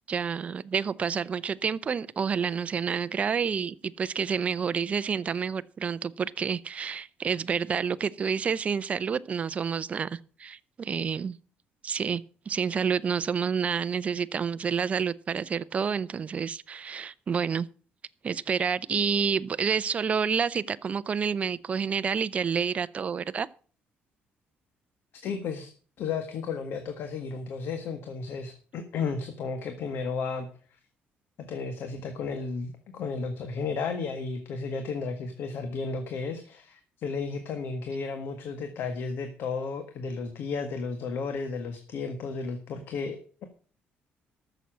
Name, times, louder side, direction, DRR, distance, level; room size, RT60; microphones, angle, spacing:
voice 1, 0.1-11.4 11.8-17.7 18.2-23.5, right 6 dB, 35° right, 0.6 m, -29 dB
voice 2, 25.2-25.7 26.0-30.5 31.5-43.4, left 4 dB, 65° left, 1.6 m, -33 dB
13.5 x 7.0 x 6.3 m
cardioid pair, 120°, 4 cm